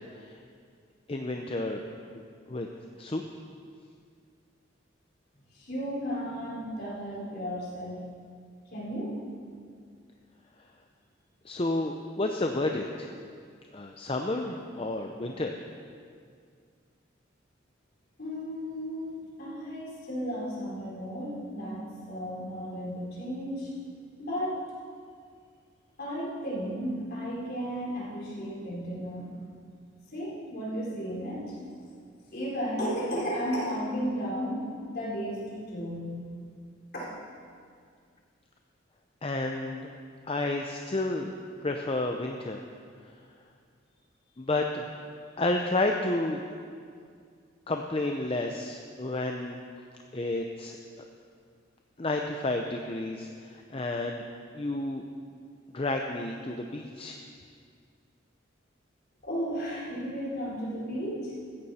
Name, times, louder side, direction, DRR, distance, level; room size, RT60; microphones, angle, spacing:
voice 1, 1.1-1.9 2.1-2.2 2.5-2.7 3.0-3.2 11.4-13.1 13.7-15.5 39.2-39.9 40.3-41.3 41.6-42.6 44.4-44.9 45.4-46.4 47.7-49.6 50.1-51.1 52.0-54.2 54.5-55.0 55.7-57.2, left 2 dB, 30° left, 3 dB, 0.6 m, -31 dB
voice 2, 5.5-8.0 8.7-9.1 18.2-23.7 24.2-24.6 26.0-29.5 30.1-31.6 32.3-36.2 36.9-37.0 59.2-61.4, equal, 50° left, -6 dB, 4.4 m, -34 dB
16.0 x 14.0 x 4.3 m, 2.2 s
head